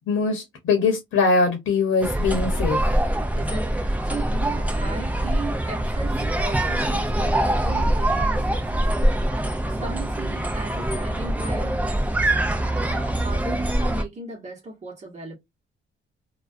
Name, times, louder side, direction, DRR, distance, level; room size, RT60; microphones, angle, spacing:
voice 1, 0.1-2.8, left 4 dB, 80° left, 0.8 m, -22 dB
sound 1, 2.0-14.0, right 1 dB, 5° right, 0.4 m, -24 dB
voice 2, 3.3-8.9 9.7-11.8 12.7-15.3, right 3 dB, 35° right, 0.9 m, -37 dB
2.3 x 2.2 x 2.4 m
cardioid pair, 125°, 20 cm